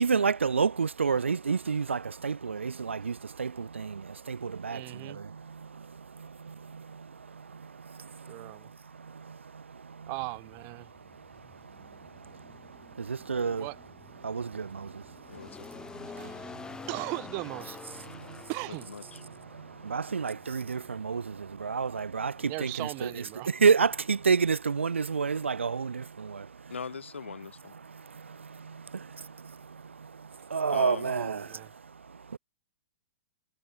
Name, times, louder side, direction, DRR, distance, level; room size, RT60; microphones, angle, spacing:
voice 1, 0.0-9.4 10.8-13.7 14.1-16.9 17.9-18.5 19.1-26.7 27.8-32.4, right 5 dB, 85° right, 1.1 m, -31 dB
voice 2, 4.7-5.2 8.3-8.7 10.1-10.9 13.5-13.8 16.1-16.5 16.9-17.8 18.5-18.9 22.4-23.5 31.1-31.7, right 34 dB, 40° right, 1.4 m, -38 dB
sound 1, 10.1-24.5, left 4 dB, 10° left, 2.9 m, -49 dB
voice 3, 15.3-15.7 18.7-19.2 26.7-27.7 30.7-31.1, left 6 dB, 80° left, 1.2 m, -40 dB
hypercardioid pair, 115°, 6 cm